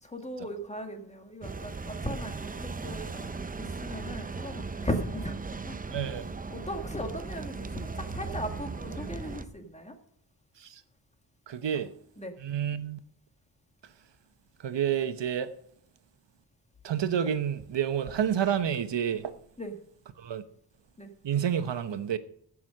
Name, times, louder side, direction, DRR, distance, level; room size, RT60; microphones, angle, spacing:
voice 1, 0.0-5.9 6.5-10.0 12.2-12.3 19.6-19.8 21.0-21.1, equal, 15° left, 1.7 m, -37 dB
sound 1, 1.4-9.4, right 4 dB, 20° right, 0.5 m, -38 dB
voice 2, 5.9-6.2 10.6-10.8 11.5-11.9 12.4-13.0 14.6-15.5 16.8-19.3 20.2-20.4 21.2-22.2, right 9 dB, 90° right, 1.0 m, -29 dB
15.0 x 6.3 x 6.4 m
wide cardioid pair, 140°, 42 cm